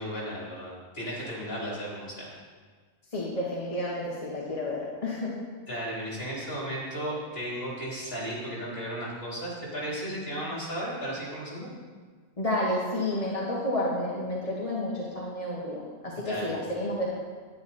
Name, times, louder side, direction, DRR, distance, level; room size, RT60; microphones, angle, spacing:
voice 1, 0.0-2.3 5.7-11.7 16.2-16.6, equal, 45° left, -6 dB, 4.0 m, -35 dB
voice 2, 3.1-5.3 12.4-17.2, left 1 dB, 25° left, -5 dB, 1.4 m, -30 dB
10.5 x 10.5 x 4.3 m, 1.5 s
omnidirectional pair, 1.5 m